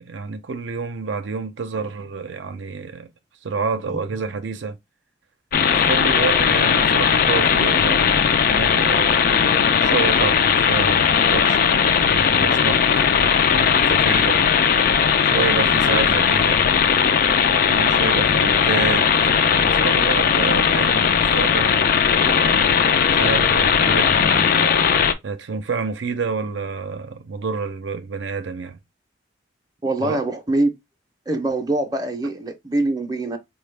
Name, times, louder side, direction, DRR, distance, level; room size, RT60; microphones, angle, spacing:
voice 1, 0.0-3.1 3.4-4.8 5.6-12.8 13.5-14.4 15.2-16.7 17.6-19.1 19.4-22.8 23.1-24.8 25.2-28.8 30.0-30.2, right 4 dB, 75° right, 0.5 m, -29 dB
sound 1, 5.5-25.1, left 7 dB, 50° left, 0.4 m, -18 dB
voice 2, 29.8-30.7 31.3-33.4, right 2 dB, 20° right, 0.5 m, -23 dB
4.2 x 2.2 x 3.2 m
head